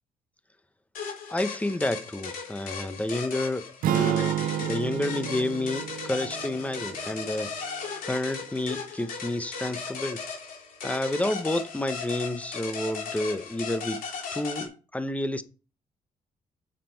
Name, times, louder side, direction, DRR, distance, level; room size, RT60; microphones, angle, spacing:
sound 1, 0.9-14.7, left 5 dB, 75° left, 3.3 m, -37 dB
voice 1, 1.3-7.5 8.0-10.2 10.8-14.0 14.3-15.4, left 1 dB, 10° left, 0.9 m, -30 dB
sound 2, 3.8-8.0, right 12 dB, 75° right, 0.5 m, -31 dB
7.6 x 7.4 x 4.6 m
cardioid pair, 85°, 15 cm